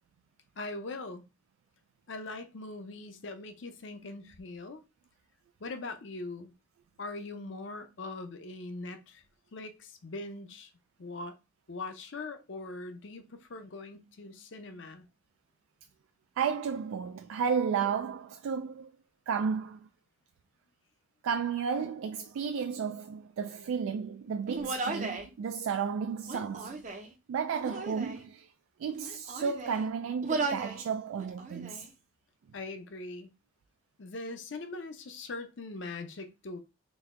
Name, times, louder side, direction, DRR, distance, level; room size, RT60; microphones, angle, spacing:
voice 1, 0.6-1.2 2.1-4.8 5.6-6.5 7.0-9.2 9.5-10.7 11.0-11.4 11.7-15.0 32.5-33.3 34.0-36.6, left 2 dB, 65° left, 0.6 m, -41 dB
voice 2, 16.4-18.9 19.3-19.8 21.2-26.8 27.3-28.5 28.8-31.9, right 6 dB, 90° right, 0.3 m, -33 dB
Human voice, 24.5-25.3 26.2-27.1 27.6-28.2 28.9-29.9 30.2-30.8 31.2-31.9, right 3 dB, 35° right, 0.5 m, -36 dB
4.0 x 2.1 x 3.6 m
head